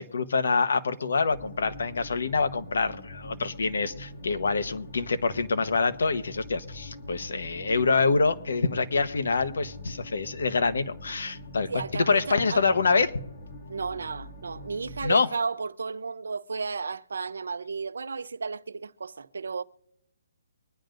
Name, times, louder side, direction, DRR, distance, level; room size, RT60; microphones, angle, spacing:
voice 1, 0.0-13.1 15.0-15.3, left 4 dB, 65° left, 1.1 m, -26 dB
sound 1, 1.3-15.1, left 1 dB, 30° left, 2.2 m, -44 dB
voice 2, 11.7-12.7 13.7-19.6, right 4 dB, 80° right, 0.6 m, -33 dB
24.0 x 10.5 x 2.6 m
hypercardioid pair, 175°, 0 cm